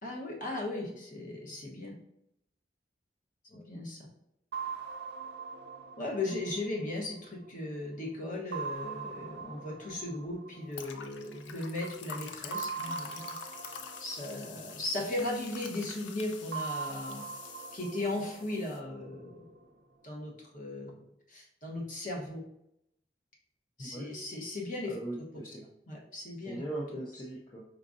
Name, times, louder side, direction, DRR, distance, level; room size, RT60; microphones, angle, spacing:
voice 1, 0.0-2.0 3.7-4.0 6.0-13.4 14.0-17.3 17.7-19.5 20.0-22.4 23.8-24.9 25.4-25.5 25.9-26.6, left 2 dB, 45° left, -2 dB, 1.0 m, -37 dB
sound 1, 4.5-7.8 8.5-11.4 12.5-15.6 16.5-19.6, right 5 dB, 65° right, 0.5 m, -42 dB
sound 2, 10.7-18.8, left 6 dB, 90° left, 0.5 m, -46 dB
voice 2, 24.8-25.6 26.5-27.7, right 1 dB, 25° left, -3 dB, 0.5 m, -40 dB
4.7 x 3.6 x 2.5 m, 0.81 s
head